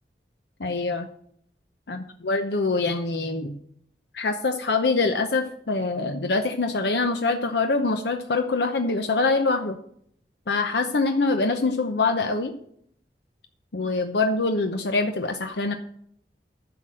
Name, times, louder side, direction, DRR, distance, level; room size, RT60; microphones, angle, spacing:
voice 1, 0.6-1.1 1.9-3.6 4.1-9.8 10.5-12.5 13.7-15.7, left 3 dB, 80° left, 6 dB, 0.8 m, -24 dB
10.5 x 6.0 x 7.6 m, 0.67 s
head